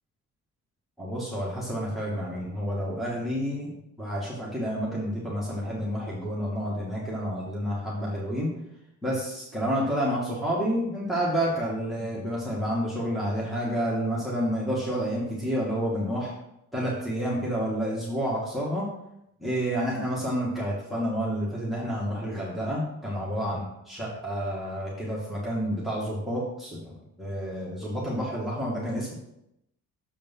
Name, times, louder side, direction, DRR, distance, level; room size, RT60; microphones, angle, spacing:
voice 1, 1.0-3.7 4.0-8.5 9.0-16.3 16.7-18.9 19.4-29.1, equal, ahead, -6 dB, 2.3 m, -29 dB
7.1 x 5.1 x 5.6 m, 0.83 s
cardioid pair, 90°, 30 cm